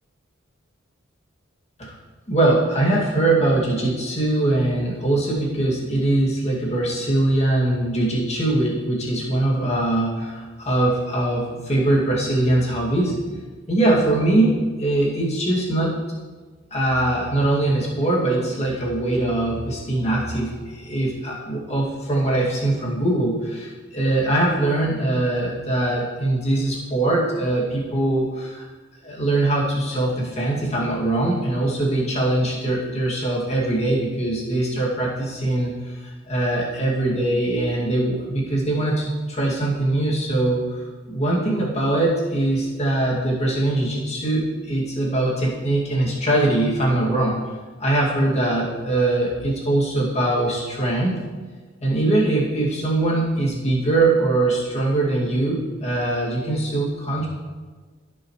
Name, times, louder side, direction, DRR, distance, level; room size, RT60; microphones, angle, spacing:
voice 1, 2.3-13.2 13.7-16.0 16.7-28.6 29.0-47.4 47.8-51.2 51.8-57.3, right 2 dB, 30° left, -3 dB, 2.3 m, -22 dB
16.0 x 6.5 x 3.2 m, 1.4 s
head